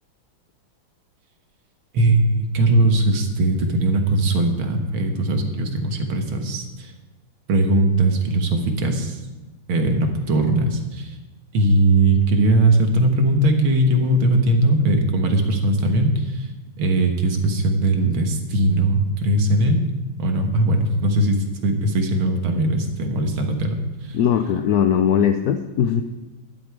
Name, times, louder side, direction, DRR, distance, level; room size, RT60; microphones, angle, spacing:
voice 1, 1.9-6.9 7.5-9.2 9.7-11.2 11.5-16.5 16.8-19.8 20.2-24.2, right 1 dB, 80° right, 4 dB, 2.2 m, -20 dB
voice 2, 24.1-26.0, left 8 dB, 75° left, 7 dB, 0.9 m, -19 dB
12.0 x 11.0 x 4.8 m, 1.1 s
omnidirectional pair, 2.2 m